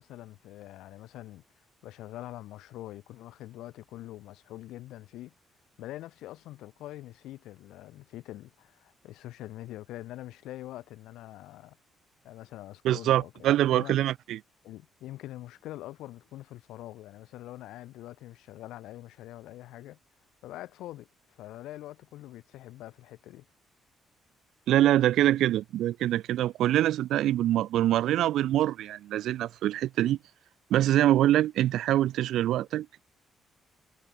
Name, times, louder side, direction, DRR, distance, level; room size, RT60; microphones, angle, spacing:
voice 1, 0.0-1.4 1.8-5.3 5.8-11.8 12.2-14.0 14.6-20.0 20.4-23.5, left 15 dB, 90° left, 5.7 m, -44 dB
voice 2, 12.8-14.4 24.7-30.2 30.7-33.0, right 13 dB, 80° right, 0.6 m, -24 dB
cardioid pair, 90°, 0 cm